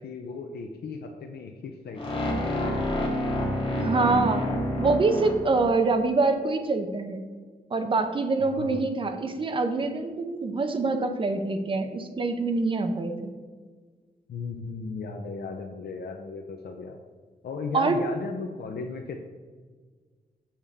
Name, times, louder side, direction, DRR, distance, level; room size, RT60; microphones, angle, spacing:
voice 1, 0.0-2.4 3.5-4.1 8.4-8.8 14.3-17.0 17.4-19.2, left 4 dB, 80° left, 3 dB, 0.6 m, -36 dB
sound 1, 2.0-6.1, equal, 35° left, 1.7 m, -28 dB
voice 2, 3.8-4.4 4.8-7.2 7.7-13.3 17.7-18.0, right 3 dB, 30° right, 6 dB, 0.6 m, -25 dB
7.2 x 6.8 x 3.6 m, 1.5 s
wide cardioid pair, 180°, 17 cm